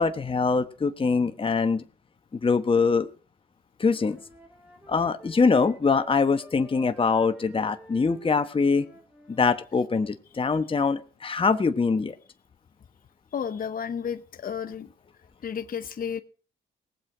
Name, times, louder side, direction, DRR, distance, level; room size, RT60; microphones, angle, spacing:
voice 1, 0.0-1.8 2.4-3.1 3.8-4.2 4.9-8.8 9.3-12.2, left 4 dB, 30° left, 9 dB, 1.1 m, -23 dB
Wind instrument woodwind instrument, 3.8-9.5, right 1 dB, 10° right, 3.7 m, -50 dB
voice 2, 13.3-14.9 15.4-16.2, left 7 dB, 50° left, 10 dB, 0.9 m, -32 dB
19.0 x 7.7 x 4.9 m, 0.38 s
supercardioid pair, 60°, 19 cm